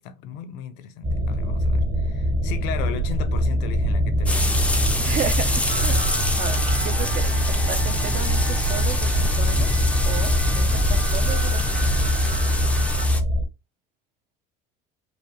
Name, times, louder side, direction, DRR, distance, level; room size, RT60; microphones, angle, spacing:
voice 1, 0.0-4.7, left 8 dB, 65° left, 0.7 m, -36 dB
sound 1, 1.0-13.4, equal, 30° right, 1.0 m, -23 dB
sound 2, 4.3-13.2, left 3 dB, 5° left, 0.4 m, -26 dB
voice 2, 5.0-6.0 6.4-12.4, right 9 dB, 45° right, 0.6 m, -34 dB
sound 3, 5.7-13.1, right 4 dB, 70° right, 1.4 m, -37 dB
5.0 x 2.2 x 3.0 m
cardioid pair, 135°, 19 cm